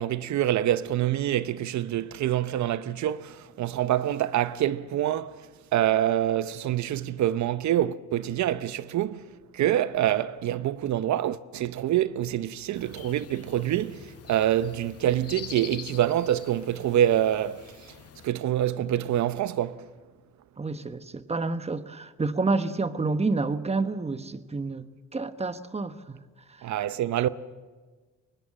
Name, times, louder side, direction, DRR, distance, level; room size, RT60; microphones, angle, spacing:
voice 1, 0.0-5.4 5.7-9.3 9.5-17.7 18.2-19.9 26.6-27.3, right 12 dB, 70° right, 0.8 m, -26 dB
sound 1, 12.7-18.3, left 10 dB, 55° left, 0.9 m, -45 dB
voice 2, 20.6-24.9 25.1-26.2, right 3 dB, 20° right, 1.2 m, -29 dB
23.5 x 20.0 x 7.6 m
cardioid pair, 90°, 30 cm